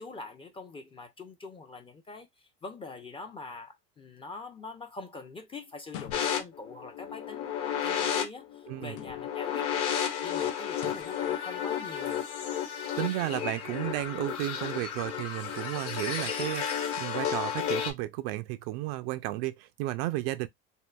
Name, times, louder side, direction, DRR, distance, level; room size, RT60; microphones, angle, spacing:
voice 1, 0.0-2.3 2.6-7.5 7.8-9.7 10.2-12.2, left 3 dB, 20° left, 0.4 m, -44 dB
sound 1, 5.8-6.7 8.9-9.5 10.7-11.3, left 10 dB, 75° left, 0.5 m, -45 dB
sound 2, 6.1-17.9, left 8 dB, 50° left, 1.0 m, -32 dB
voice 2, 8.7-9.0 13.0-20.5, right 16 dB, 90° right, 0.4 m, -33 dB
3.6 x 2.3 x 2.2 m
cardioid pair, 130°, 29 cm